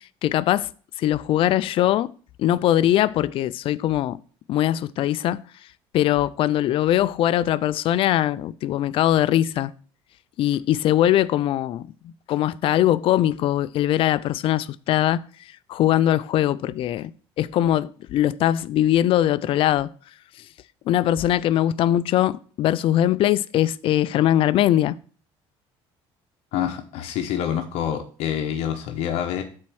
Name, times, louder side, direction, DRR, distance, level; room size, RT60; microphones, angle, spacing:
voice 1, 0.2-0.7 1.0-2.1 2.4-4.2 4.5-5.4 5.9-9.7 10.4-15.3 15.7-19.9 20.9-25.0, left 12 dB, 55° left, 0.4 m, -21 dB
voice 2, 26.5-29.4, left 9 dB, 70° left, 0.9 m, -27 dB
7.5 x 4.3 x 6.2 m
cardioid pair, 115°, 11 cm